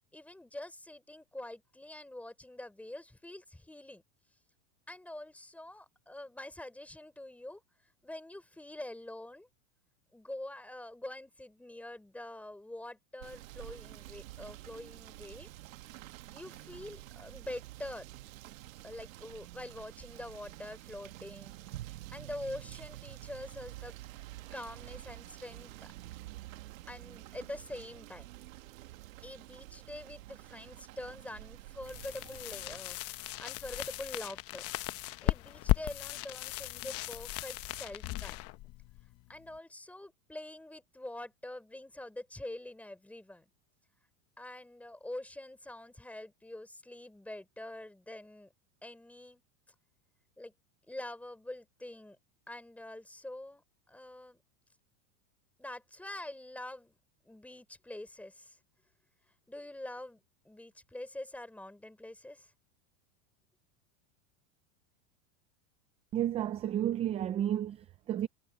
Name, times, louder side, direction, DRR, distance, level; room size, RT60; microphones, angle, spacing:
voice 1, 0.1-4.0 4.9-7.6 8.0-9.5 10.1-15.5 16.3-18.1 18.8-21.5 21.8-23.9 24.5-25.9 26.9-28.3 29.2-33.0 33.4-34.6 35.2-38.4 39.3-43.5 44.4-48.5 48.8-49.4 50.4-50.5 50.9-52.2 52.5-54.4 55.6-57.0 57.2-58.6 59.5-62.5, left 1 dB, 5° left, 3.8 m, -45 dB
Rain / Motor vehicle (road), 13.2-32.8, right 16 dB, 85° right, 1.6 m, -49 dB
sound 1, 31.8-39.6, left 17 dB, 35° left, 1.0 m, -36 dB
voice 2, 66.1-68.3, right 11 dB, 15° right, 0.4 m, -32 dB
supercardioid pair, 150°, 39 cm